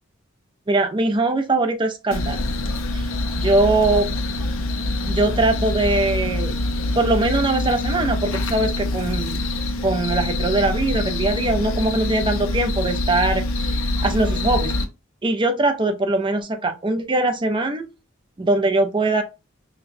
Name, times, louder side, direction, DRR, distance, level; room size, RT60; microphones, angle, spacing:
voice 1, 0.7-2.4 2.9-3.0 3.4-4.1 5.1-6.5 7.0-9.4 9.8-14.7 15.2-17.9 18.4-19.2, right 2 dB, 25° right, 0.5 m, -21 dB
sound 1, 2.1-14.8, left 2 dB, 80° left, 0.7 m, -25 dB
5.8 x 2.2 x 2.6 m
head